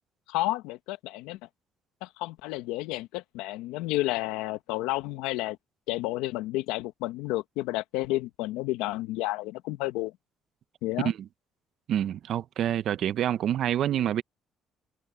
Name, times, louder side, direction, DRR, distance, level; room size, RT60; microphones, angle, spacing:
voice 1, 0.3-1.4 2.0-5.6 5.9-10.1 10.8-11.1, left 18 dB, 90° left, 1.2 m, -31 dB
voice 2, 11.9-14.2, right 10 dB, 65° right, 1.0 m, -27 dB
supercardioid pair, 75°, 0 cm